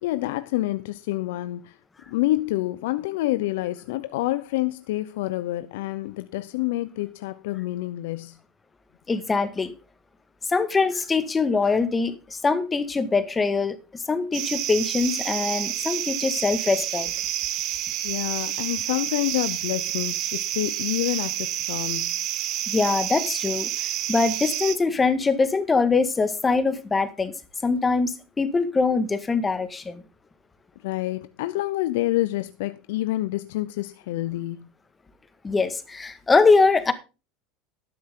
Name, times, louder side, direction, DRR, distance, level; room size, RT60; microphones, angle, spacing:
voice 1, 0.0-1.8 2.1-8.4 18.0-22.2 30.8-34.7, left 16 dB, 80° left, 0.7 m, -28 dB
voice 2, 9.1-9.7 10.5-17.1 22.7-27.3 27.6-30.0 35.4-36.9, left 4 dB, 15° left, 1.7 m, -23 dB
sound 1, 14.3-24.8, right 13 dB, 50° right, 1.7 m, -29 dB
12.5 x 11.0 x 3.8 m
supercardioid pair, 130°, 0 cm